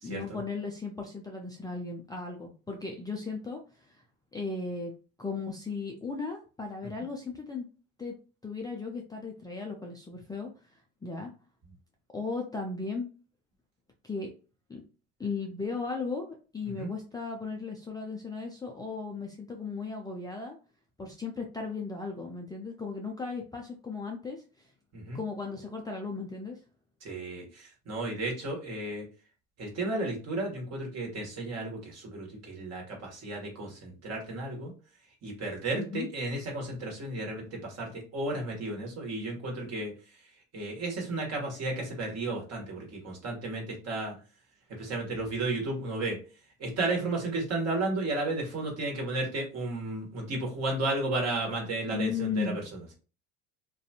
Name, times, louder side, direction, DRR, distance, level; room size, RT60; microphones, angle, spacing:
voice 1, 0.0-4.0 4.3-4.9 5.2-7.7 8.0-8.1 8.4-11.3 12.1-13.1 14.0-14.3 14.7-14.8 15.2-20.6 21.0-24.7 25.1-26.6 35.7-36.1 51.9-52.6, left 4 dB, 10° left, 0 dB, 0.4 m, -36 dB
voice 2, 27.0-29.0 29.6-34.7 35.2-39.9 40.5-44.1 44.7-46.2 46.6-52.6, right 2 dB, 40° right, 0 dB, 1.4 m, -33 dB
2.5 x 2.3 x 2.8 m, 0.36 s
hypercardioid pair, 80°, 38 cm